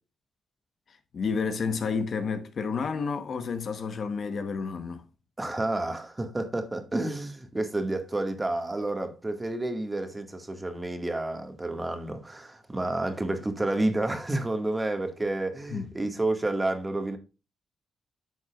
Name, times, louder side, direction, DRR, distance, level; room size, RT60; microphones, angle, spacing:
voice 1, 1.1-5.0 15.7-15.9, left 5 dB, 55° left, 1.1 m, -30 dB
voice 2, 5.4-17.2, right 2 dB, 20° right, 1.9 m, -30 dB
10.5 x 6.3 x 2.5 m
cardioid pair, 90°, 0 cm